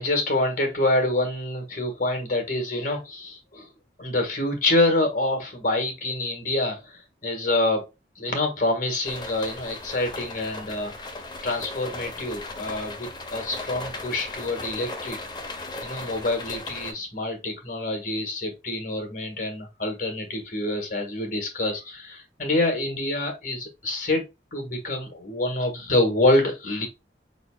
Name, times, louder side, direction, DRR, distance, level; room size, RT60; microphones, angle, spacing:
voice 1, 0.0-3.7 4.0-7.8 8.2-11.1 11.4-15.2 15.8-24.2 24.5-26.9, left 2 dB, 50° left, 1.7 m, -26 dB
sound 1, 9.0-16.9, left 2 dB, 25° left, 0.8 m, -37 dB
4.7 x 4.1 x 2.3 m
head